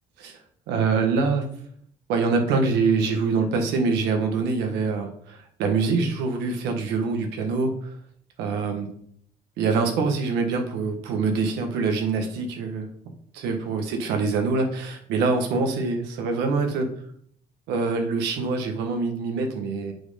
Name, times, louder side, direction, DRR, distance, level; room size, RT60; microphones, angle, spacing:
voice 1, 0.7-1.5 2.1-7.9 8.4-8.9 9.6-12.9 13.3-16.9 17.7-19.9, right 4 dB, 90° right, 4 dB, 1.5 m, -24 dB
8.5 x 4.5 x 5.1 m, 0.65 s
cardioid pair, 110°, 17 cm